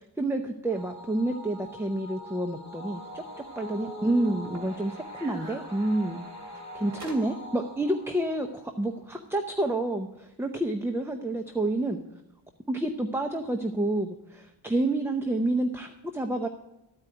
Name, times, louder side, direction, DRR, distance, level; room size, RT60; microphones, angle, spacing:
voice 1, 0.2-3.2 3.6-6.3 6.7-12.0 12.7-16.5, right 1 dB, 5° right, 5 dB, 0.6 m, -29 dB
sound 1, 0.7-9.3, equal, 40° left, 2.1 m, -44 dB
sound 2, 2.9-7.6, right 1 dB, 40° right, 3.1 m, -45 dB
14.0 x 4.8 x 8.9 m, 0.90 s
wide cardioid pair, 115°, 41 cm